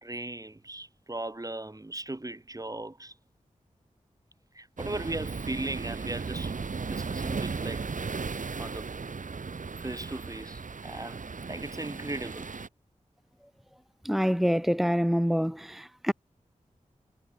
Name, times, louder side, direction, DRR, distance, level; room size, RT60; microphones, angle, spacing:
voice 1, 0.0-3.1 4.5-6.5 6.9-7.8 8.6-8.9 9.8-11.2 11.5-12.5, right 2 dB, 25° right, 2.3 m, -37 dB
sound 1, 4.8-12.7, right 4 dB, 70° right, 2.7 m, -36 dB
voice 2, 14.0-16.1, equal, ahead, 1.3 m, -26 dB
cardioid pair, 40°, 14 cm